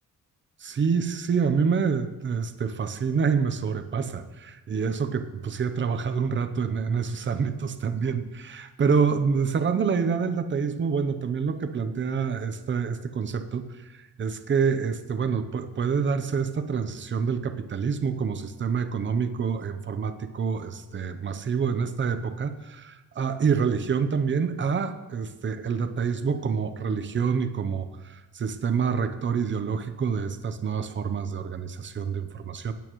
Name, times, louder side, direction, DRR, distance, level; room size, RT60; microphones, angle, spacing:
voice 1, 0.6-13.7 14.2-32.7, right 6 dB, 35° right, 9 dB, 0.7 m, -27 dB
16.0 x 8.8 x 3.1 m, 1.1 s
cardioid pair, 150°, 35 cm